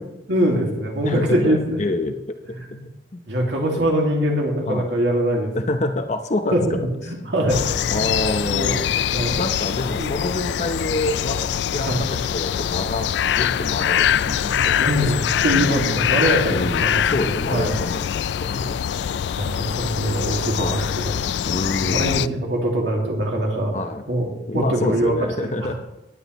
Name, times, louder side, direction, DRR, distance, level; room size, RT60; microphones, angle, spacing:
voice 1, 0.3-1.8 2.6-2.8 3.3-5.5 6.5-7.6 7.9-8.8 9.1-9.4 10.0-10.2 11.8-12.0 14.8-15.2 15.4-17.7 19.4-21.2 21.9-23.8 24.1-25.2 25.4-25.7, right 1 dB, 70° right, -1 dB, 2.2 m, -23 dB
voice 2, 1.0-2.2 2.4-2.5 3.1-3.2 4.7-4.9 5.5-6.8 7.8-8.9 9.4-11.4 11.7-13.1 13.3-15.2 15.5-16.0 16.5-18.1 18.4-18.8 20.6-20.9 21.4-22.4 23.7-24.0 24.5-25.7, left 2 dB, 40° left, 6 dB, 0.8 m, -27 dB
sound 1, 7.5-22.3, left 9 dB, 70° left, 0.3 m, -23 dB
18.0 x 10.0 x 3.1 m, 0.93 s
head